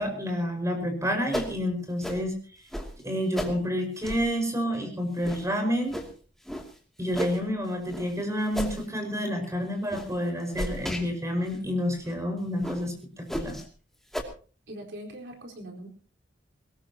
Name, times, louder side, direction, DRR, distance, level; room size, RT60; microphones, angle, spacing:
voice 1, 0.0-2.4 3.0-5.9 7.0-13.6, equal, 15° right, 4 dB, 5.4 m, -29 dB
sound 1, 1.3-1.5 2.0-2.2 2.7-2.9 3.3-3.5 4.0-4.3 4.7-4.8 5.2-5.4 5.9-6.1 6.4-6.7 7.1-7.4 7.9-8.1 8.5-8.8 9.2-9.4 9.9-10.1 10.5-11.0 11.5-11.6 12.0-12.1 12.6-12.8 13.3-13.6 14.1-14.2, equal, ahead, 2.6 m, -33 dB
voice 2, 14.7-15.9, right 1 dB, 70° right, 0 dB, 4.4 m, -41 dB
21.5 x 19.0 x 2.9 m, 0.39 s
head